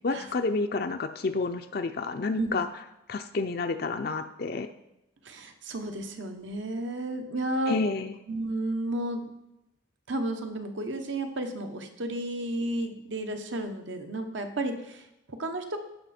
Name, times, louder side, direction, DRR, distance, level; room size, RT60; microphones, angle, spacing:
voice 1, 0.0-2.7 3.1-4.7 7.7-8.2, left 3 dB, 50° left, 7 dB, 0.5 m, -29 dB
voice 2, 5.2-7.8 8.3-9.3 10.1-15.8, right 1 dB, 70° right, 6 dB, 1.1 m, -32 dB
15.0 x 5.7 x 4.3 m, 0.87 s
head